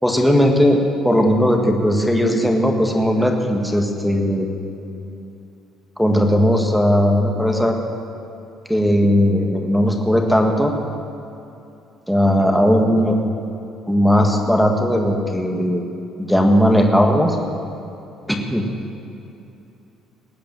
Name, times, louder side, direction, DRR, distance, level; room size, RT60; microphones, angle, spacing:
voice 1, 0.0-4.5 6.0-7.8 8.7-10.7 12.1-13.2 13.9-15.8 16.2-17.4 18.3-18.7, equal, ahead, 2 dB, 1.6 m, -17 dB
19.0 x 8.4 x 7.6 m, 2.7 s
cardioid pair, 135°, 0 cm